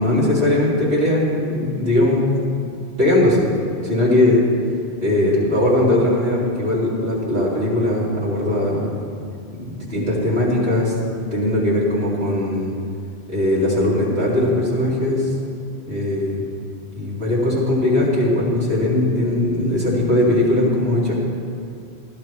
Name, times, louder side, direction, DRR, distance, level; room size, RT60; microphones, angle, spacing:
voice 1, 0.0-2.3 3.0-3.4 3.8-4.4 5.0-8.9 9.6-10.9 11.3-12.7 13.3-15.3 15.9-16.4 16.9-21.1, left 1 dB, 70° right, -7 dB, 3.3 m, -19 dB
17.5 x 12.0 x 3.4 m, 2.4 s
omnidirectional pair, 1.1 m